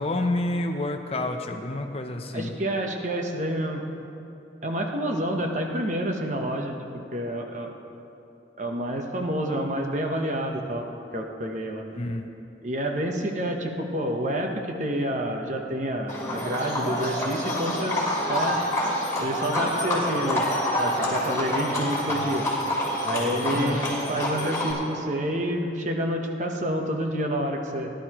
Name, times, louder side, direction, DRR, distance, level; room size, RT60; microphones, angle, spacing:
voice 1, 0.0-2.5 12.0-12.2 23.5-23.8, left 2 dB, 35° left, 5 dB, 0.6 m, -28 dB
voice 2, 2.3-3.8 4.6-6.7 7.1-7.7 8.6-10.8 11.1-11.9 12.6-18.0 18.3-18.6 19.2-20.5 20.8-22.5 23.0-27.9, right 1 dB, 40° right, 2 dB, 0.9 m, -28 dB
Livestock farm animals working animals, 16.1-24.7, left 1 dB, 15° left, 2.9 m, -27 dB
19.0 x 11.5 x 3.0 m, 2.8 s
head